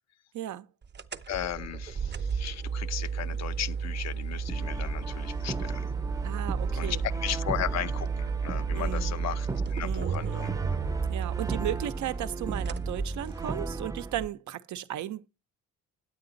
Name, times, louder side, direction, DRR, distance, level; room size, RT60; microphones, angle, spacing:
voice 1, 0.3-0.7 6.2-7.0 8.7-9.1 9.8-10.5 11.1-15.3, right 12 dB, 75° right, 0.7 m, -35 dB
sound 1, 0.9-13.8, right 6 dB, 35° right, 0.8 m, -33 dB
voice 2, 1.3-5.9 6.7-10.5, left 11 dB, 60° left, 0.6 m, -36 dB
Brass instrument, 4.5-14.3, right 2 dB, 10° right, 0.4 m, -36 dB
9.5 x 8.5 x 3.9 m
cardioid pair, 90°, 30 cm